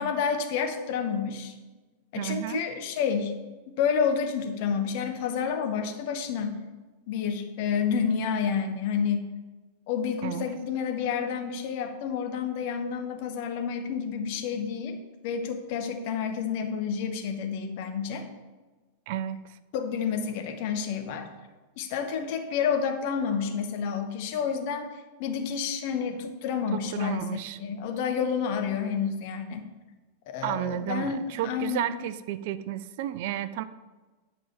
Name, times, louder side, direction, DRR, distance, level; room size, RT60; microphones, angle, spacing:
voice 1, 0.0-1.5 2.1-3.3 3.8-6.6 7.1-9.3 9.9-15.0 15.2-18.2 19.7-21.3 21.8-24.9 25.2-27.3 27.6-29.6 30.3-31.9, left 7 dB, 45° left, 5 dB, 1.1 m, -29 dB
voice 2, 2.2-2.6 10.2-10.5 19.1-19.6 26.7-27.6 30.4-33.6, right 11 dB, 50° right, 14 dB, 0.4 m, -32 dB
10.0 x 4.9 x 4.4 m, 1.3 s
figure-of-eight pair, 90°, 0 cm